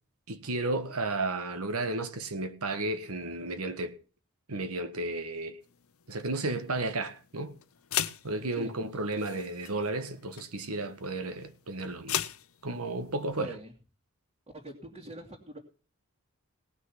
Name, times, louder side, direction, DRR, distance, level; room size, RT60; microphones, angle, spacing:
voice 1, 0.3-4.0 4.5-5.6 6.1-7.5 8.2-12.2 12.6-13.5, right 2 dB, 90° right, 1.6 m, -33 dB
sound 1, 5.6-13.4, left 11 dB, 75° left, 0.7 m, -39 dB
voice 2, 8.5-9.3 13.2-13.7 14.5-15.6, right 1 dB, 30° right, 2.5 m, -45 dB
18.0 x 6.3 x 5.8 m
head